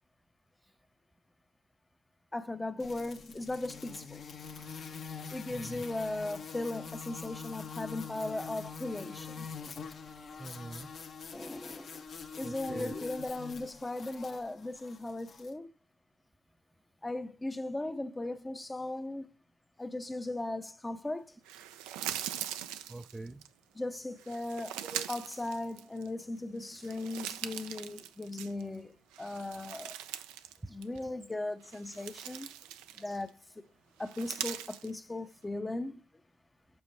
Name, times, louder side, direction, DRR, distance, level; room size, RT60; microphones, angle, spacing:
voice 1, 2.3-4.2 4.5-4.6 5.3-9.5 11.3-12.0 12.4-15.7 17.0-19.3 19.8-21.3 23.7-24.8 25.1-30.0 30.7-32.5 32.9-33.7 34.0-36.0, left 2 dB, 15° left, 0.7 m, -38 dB
sound 1, 2.8-15.5, left 5 dB, 55° left, 1.0 m, -45 dB
voice 2, 5.5-5.8 10.4-10.9 12.4-13.1 22.9-23.4 24.8-25.0 30.6-30.7, right 2 dB, 15° right, 0.5 m, -43 dB
sound 2, 21.5-23.5 24.2-26.2 26.6-28.8 29.1-30.6 30.8-31.0 31.6-33.3 34.0-34.9, right 11 dB, 85° right, 0.4 m, -41 dB
7.1 x 5.1 x 3.3 m
hypercardioid pair, 55°, 0 cm